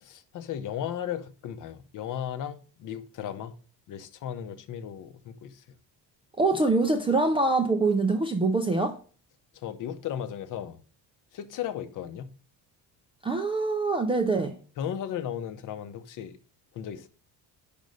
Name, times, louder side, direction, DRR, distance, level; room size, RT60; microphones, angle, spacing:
voice 1, 0.0-3.5 3.9-5.6 9.6-10.8 11.3-12.3 14.8-16.3 16.7-17.1, left 9 dB, 50° left, 0.7 m, -35 dB
voice 2, 6.4-9.0 13.2-14.5, right 3 dB, 15° right, 0.3 m, -24 dB
5.3 x 5.2 x 6.3 m
cardioid pair, 165°, 41 cm